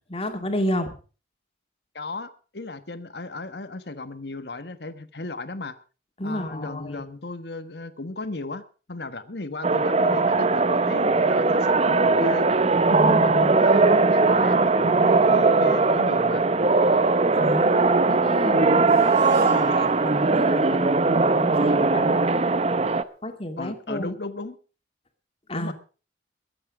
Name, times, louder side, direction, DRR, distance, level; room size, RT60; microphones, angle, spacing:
voice 1, 0.1-0.9 6.2-7.0 12.9-13.5 17.4-17.7 18.1-22.2 23.2-24.1 25.5-25.7, left 1 dB, 30° left, 5 dB, 2.3 m, -31 dB
voice 2, 1.9-5.8 6.2-12.5 13.1-16.5 23.6-24.6 25.5-25.7, left 2 dB, 65° left, 11 dB, 1.3 m, -35 dB
sound 1, 9.6-23.0, right 3 dB, 35° right, 0.7 m, -20 dB
Harp, 18.9-23.3, right 1 dB, 65° right, 5.9 m, -42 dB
22.0 x 8.6 x 5.0 m, 0.37 s
head